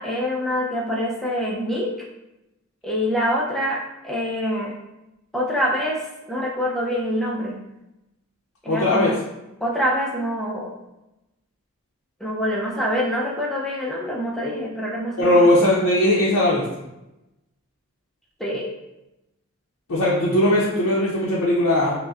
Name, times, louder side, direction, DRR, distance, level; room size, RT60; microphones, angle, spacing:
voice 1, 0.0-1.9 2.8-4.7 5.3-7.6 8.6-9.2 9.6-10.7 12.2-15.5 18.4-18.7, equal, ahead, -3 dB, 0.5 m, -25 dB
voice 2, 8.7-9.1 15.2-16.7 19.9-22.0, left 1 dB, 80° left, -6 dB, 0.6 m, -19 dB
5.2 x 2.1 x 2.4 m, 0.94 s
head